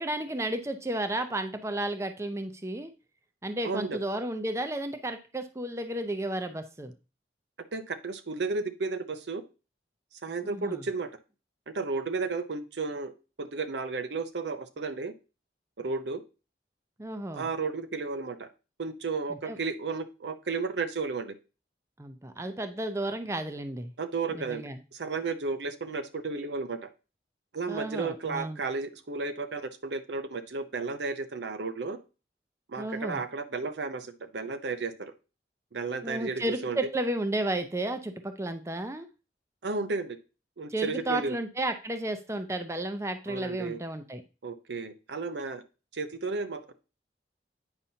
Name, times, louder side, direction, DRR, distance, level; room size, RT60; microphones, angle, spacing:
voice 1, 0.0-2.9 3.4-6.9 10.4-10.8 17.0-17.5 19.3-19.6 22.0-23.9 24.3-24.8 27.7-28.6 32.8-33.3 36.0-39.1 40.7-44.2, right 1 dB, 15° right, 8 dB, 0.5 m, -33 dB
voice 2, 3.6-4.0 7.7-9.4 10.2-11.1 11.7-13.1 13.4-15.1 15.8-16.2 17.3-18.5 18.8-21.4 24.0-26.9 27.5-32.0 32.7-35.1 35.7-36.8 39.6-40.2 40.6-41.4 43.3-43.8 44.4-45.6 45.9-46.7, right 4 dB, 75° right, 10 dB, 0.7 m, -33 dB
8.9 x 5.4 x 2.8 m, 0.32 s
head